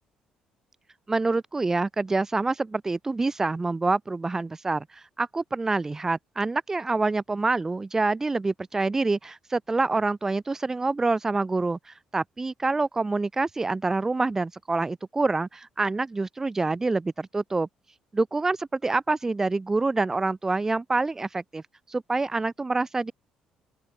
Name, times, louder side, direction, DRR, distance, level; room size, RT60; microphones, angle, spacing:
voice 1, 1.1-17.7 18.1-21.6 21.9-23.1, right 3 dB, 20° right, 7.7 m, -26 dB
open air
cardioid pair, 105°, 2 cm